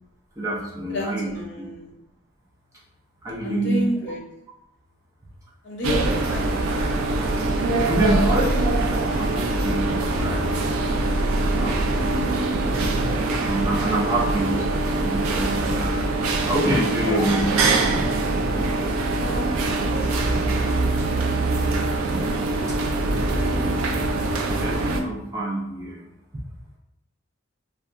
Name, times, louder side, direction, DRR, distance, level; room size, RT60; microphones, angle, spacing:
voice 1, 0.4-1.7 3.2-3.8 7.8-8.7 9.2-10.5 11.5-12.4 13.5-17.6 22.1-22.8 24.6-26.0, right 1 dB, 15° right, -5 dB, 0.4 m, -27 dB
voice 2, 0.9-1.9 3.4-4.2 5.6-6.9 17.0-17.4 19.1-20.9, equal, 55° left, -2 dB, 0.6 m, -33 dB
sound 1, 5.8-25.0, right 2 dB, 85° right, 0.4 m, -23 dB
sound 2, 8.2-20.0, left 2 dB, 40° right, 1.2 m, -40 dB
2.7 x 2.2 x 2.4 m, 0.87 s
head